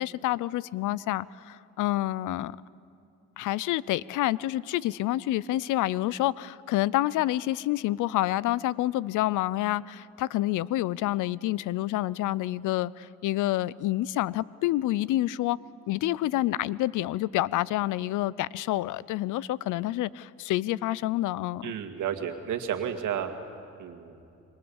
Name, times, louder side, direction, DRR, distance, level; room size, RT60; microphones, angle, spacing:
voice 1, 0.0-2.6 3.4-15.6 15.9-21.7, left 15 dB, 85° left, 0.6 m, -28 dB
voice 2, 21.6-23.3 23.8-24.2, right 9 dB, 80° right, 2.1 m, -32 dB
28.0 x 23.0 x 7.2 m
cardioid pair, 90°, 30 cm